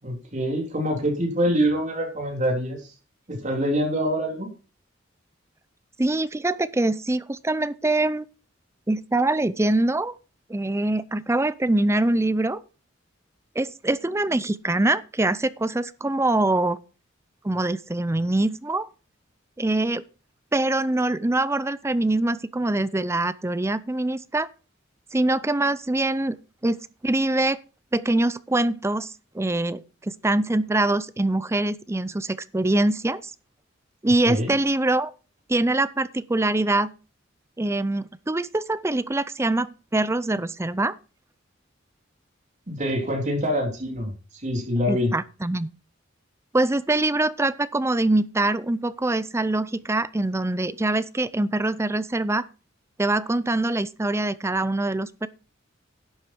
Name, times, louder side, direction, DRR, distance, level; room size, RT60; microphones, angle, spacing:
voice 1, 0.0-2.9 3.3-4.5 34.3-34.5 42.7-44.1 44.4-45.1, equal, 40° right, 3.5 m, -25 dB
voice 2, 6.0-8.3 8.9-10.1 10.5-12.6 13.6-16.8 17.4-18.9 19.6-20.0 20.5-24.5 25.1-26.4 26.6-27.6 27.9-33.3 34.0-35.1 35.5-36.9 37.6-41.0 44.9-45.7 46.5-52.4 53.0-55.3, right 2 dB, 15° right, 0.5 m, -24 dB
11.0 x 8.3 x 4.5 m
head